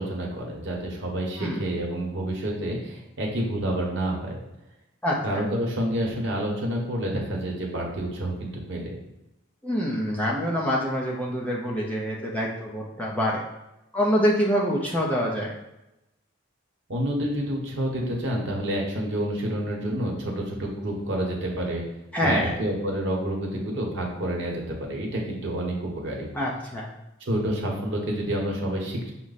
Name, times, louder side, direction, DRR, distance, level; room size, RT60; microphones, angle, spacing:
voice 1, 0.0-4.4 5.2-9.0 16.9-21.8 22.2-26.3 27.3-29.1, right 1 dB, 55° right, -1 dB, 1.0 m, -28 dB
voice 2, 9.6-13.4 13.9-15.5 22.1-22.5 26.3-26.9, equal, 5° left, -4 dB, 0.5 m, -25 dB
5.9 x 2.1 x 4.0 m, 0.92 s
head